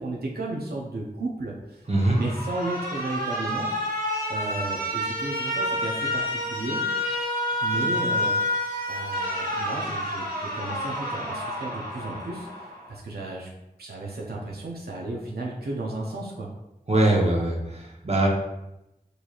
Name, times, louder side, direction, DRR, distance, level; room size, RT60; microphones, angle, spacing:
voice 1, 0.0-1.8 2.1-3.7 4.3-6.8 7.6-8.6 8.9-13.5 13.8-16.5, right 2 dB, 80° right, -3 dB, 0.6 m, -34 dB
voice 2, 1.9-2.2 16.9-18.3, right 1 dB, 40° right, -2 dB, 0.9 m, -22 dB
Alarm, 1.9-12.9, left 1 dB, 65° right, 1.2 m, -29 dB
3.9 x 3.1 x 2.4 m, 0.90 s
wide cardioid pair, 55°, 16 cm